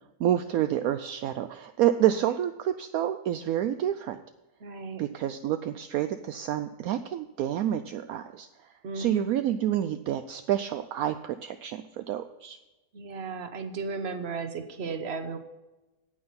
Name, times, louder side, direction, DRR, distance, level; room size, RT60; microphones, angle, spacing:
voice 1, 0.2-4.2 5.0-8.5 8.9-12.6, right 11 dB, 70° right, 9 dB, 1.0 m, -28 dB
voice 2, 4.6-5.0 8.8-9.3 12.9-15.4, right 4 dB, 45° right, 8 dB, 1.2 m, -35 dB
9.5 x 9.1 x 5.8 m, 1.1 s
omnidirectional pair, 1.7 m